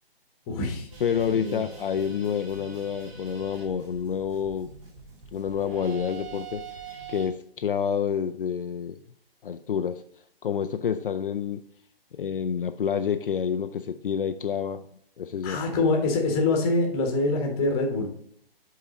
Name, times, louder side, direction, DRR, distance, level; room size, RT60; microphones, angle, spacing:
voice 1, 0.5-0.9 1.3-1.6 15.4-18.1, left 2 dB, 20° left, 2 dB, 1.2 m, -25 dB
sound 1, 0.9-7.3, right 6 dB, 35° right, 1.9 m, -44 dB
voice 2, 1.0-4.7 5.3-6.6 7.1-9.0 9.4-10.0 10.4-11.6 12.1-14.8 15.2-15.6, left 7 dB, 65° left, 8 dB, 0.4 m, -28 dB
8.5 x 3.7 x 4.0 m, 0.65 s
figure-of-eight pair, 135°, 30 cm